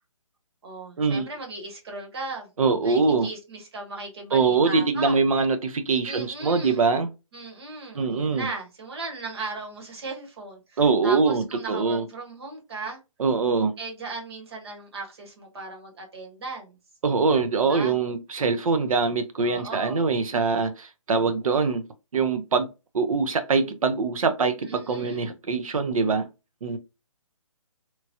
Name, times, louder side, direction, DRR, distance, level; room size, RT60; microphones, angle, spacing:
voice 1, 0.6-2.5 2.8-5.2 6.0-6.8 7.3-13.0 13.8-16.8 17.7-18.0 19.4-20.1 24.6-25.3, right 3 dB, 50° right, 1.3 m, -37 dB
voice 2, 2.6-3.3 4.3-7.1 7.9-8.5 10.8-12.0 13.2-13.7 17.0-21.8 22.1-22.7 22.9-26.3 26.6-26.8, right 4 dB, 80° right, 0.6 m, -23 dB
3.0 x 2.3 x 2.7 m
hypercardioid pair, 160°, 17 cm